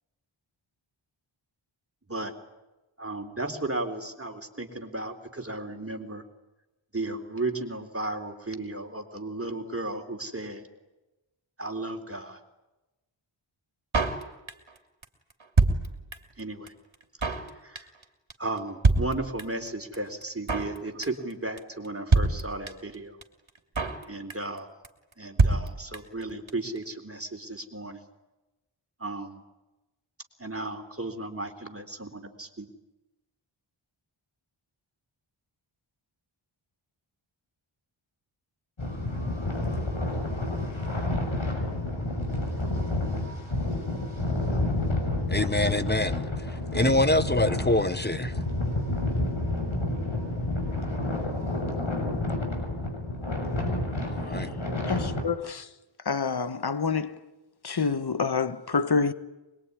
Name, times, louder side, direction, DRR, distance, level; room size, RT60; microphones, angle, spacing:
voice 1, 3.0-6.2 6.9-10.7 11.6-12.4 16.4-16.7 17.3-17.9 18.4-23.2 24.1-24.7 25.2-28.0 29.0-29.4 30.4-32.7, right 2 dB, 25° right, 3.8 m, -35 dB
Drum kit, 13.9-14.8 15.0-15.1 15.3-16.4 16.7-16.8 16.9-17.5 17.8-18.0 18.3-18.4 18.6-18.7 18.8-19.7 19.9-20.0 20.2-20.8 21.0-21.3 21.6-21.7 21.9-22.0 22.1-23.0 23.2-23.3 23.5-24.0 24.3-24.6 24.8-24.9 25.1-25.2 25.4-26.2 26.5-26.6 26.8-26.9, right 3 dB, 65° right, 3.1 m, -25 dB
sound 1, 38.8-55.2, left 1 dB, 65° left, 6.7 m, -29 dB
voice 2, 45.3-46.3 46.7-48.3 54.1-54.5, left 1 dB, 20° left, 1.2 m, -25 dB
voice 3, 54.9-55.6 56.1-57.1 57.6-59.1, left 5 dB, 50° left, 1.3 m, -27 dB
25.0 x 22.0 x 9.8 m
wide cardioid pair, 65°, 49 cm